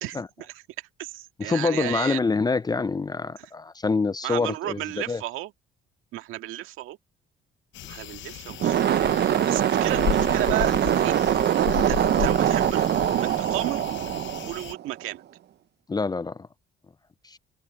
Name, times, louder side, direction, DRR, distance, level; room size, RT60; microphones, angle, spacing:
voice 1, 0.0-2.2 3.4-3.5 4.2-5.5 6.1-7.0 7.8-9.0 9.5-13.8 14.1-15.2, right 15 dB, 85° right, 1.9 m, -34 dB
voice 2, 1.4-4.8 5.1-5.2 15.9-16.4 17.2-17.4, left 4 dB, 20° left, 0.6 m, -26 dB
sound 1, 7.7-14.7, left 12 dB, 65° left, 0.9 m, -34 dB
sound 2, 8.5-15.0, right 11 dB, 55° right, 0.8 m, -23 dB
cardioid pair, 90°, 21 cm